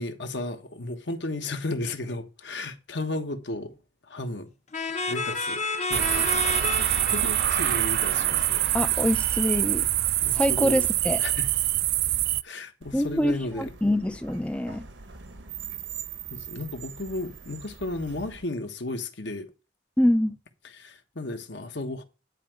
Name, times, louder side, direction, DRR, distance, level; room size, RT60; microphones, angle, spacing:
voice 1, 0.0-3.7 4.1-4.5 5.1-6.3 7.1-8.7 10.2-10.9 11.2-11.5 12.4-13.7 16.3-19.5 20.8-22.0, left 2 dB, 65° left, 1.3 m, -34 dB
sound 1, 4.7-9.3, left 3 dB, 35° left, 0.8 m, -32 dB
sound 2, 5.9-12.4, right 13 dB, 55° right, 0.4 m, -25 dB
voice 2, 8.7-9.9 10.3-11.2 12.9-14.9 20.0-20.4, left 1 dB, 5° left, 0.4 m, -25 dB
sound 3, 12.8-18.4, right 8 dB, 80° right, 1.2 m, -42 dB
10.0 x 4.7 x 7.7 m
head